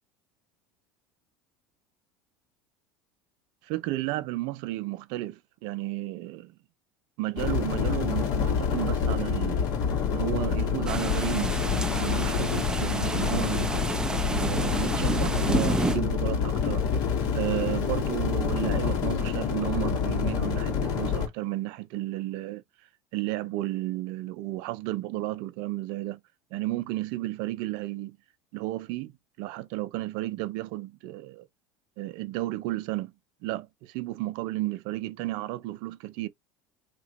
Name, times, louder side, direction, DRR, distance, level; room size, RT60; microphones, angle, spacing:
voice 1, 3.6-6.5 7.2-9.7 10.1-11.6 12.0-13.8 14.3-16.9 17.3-22.6 23.1-26.2 26.5-28.2 28.5-29.1 29.4-31.5 32.0-33.1 33.4-36.3, right 17 dB, 65° right, 0.5 m, -33 dB
sound 1, 7.4-21.3, left 6 dB, 55° left, 1.6 m, -27 dB
sound 2, 10.9-16.0, right 2 dB, 10° right, 0.5 m, -30 dB
3.0 x 2.5 x 4.0 m
hypercardioid pair, 85°, 8 cm